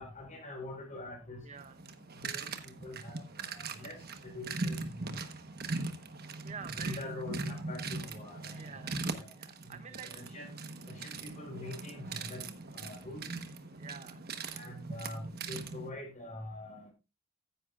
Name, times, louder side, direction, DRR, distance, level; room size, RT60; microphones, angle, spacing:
voice 1, 0.0-1.4 2.2-2.5 2.8-4.0 4.2-5.1 6.8-8.8 9.2-9.3 10.0-10.5 10.9-12.4 12.7-13.2 14.5-16.9, left 2 dB, 35° left, 2 dB, 4.7 m, -44 dB
voice 2, 1.4-1.8 6.4-7.2 8.5-10.1 13.8-14.3, right 6 dB, 35° right, 11 dB, 0.6 m, -48 dB
sound 1, 1.6-15.9, right 3 dB, 50° right, 1.2 m, -40 dB
15.0 x 10.0 x 2.5 m, 0.26 s
head